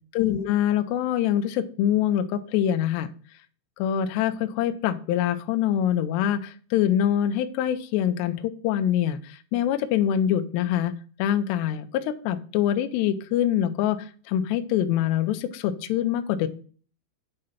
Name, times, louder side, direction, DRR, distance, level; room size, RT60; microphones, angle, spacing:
voice 1, 0.1-3.1 3.8-10.9 11.2-16.5, left 10 dB, 80° left, 8 dB, 2.5 m, -24 dB
8.5 x 3.9 x 5.6 m, 0.41 s
omnidirectional pair, 5.4 m